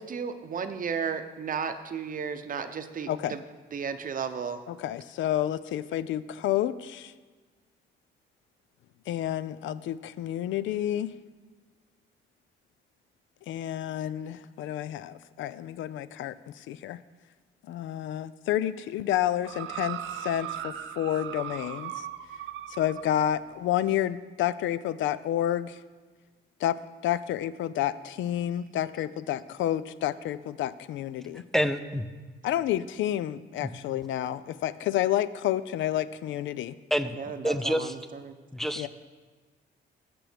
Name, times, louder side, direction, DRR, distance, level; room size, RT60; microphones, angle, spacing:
voice 1, 0.0-3.4 3.7-4.6 37.2-38.3, right 6 dB, 45° right, 9 dB, 0.7 m, -34 dB
voice 2, 4.7-7.1 9.1-11.1 13.5-17.0 17.7-22.0 22.8-25.8 26.6-31.4 32.4-36.7 38.8-38.9, left 12 dB, 75° left, 16 dB, 0.4 m, -30 dB
sound 1, 19.4-23.1 23.9-24.0, right 11 dB, 85° right, 0.6 m, -38 dB
voice 3, 31.3-32.0 33.6-33.7 36.9-37.2 37.4-38.0 38.5-38.9, equal, ahead, 11 dB, 0.5 m, -27 dB
15.5 x 6.0 x 3.4 m, 1.4 s
cardioid pair, 90°, 20 cm